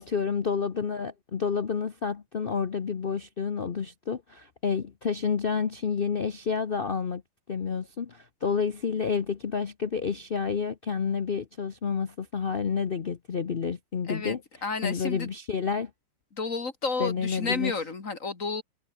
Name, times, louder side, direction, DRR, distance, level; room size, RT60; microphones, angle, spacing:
voice 1, 0.0-7.2 7.5-14.4 14.8-15.9 17.0-17.7, left 6 dB, 80° left, 0.5 m, -29 dB
voice 2, 14.6-15.3 16.3-18.6, left 4 dB, 35° left, 2.5 m, -31 dB
omnidirectional pair, 2.4 m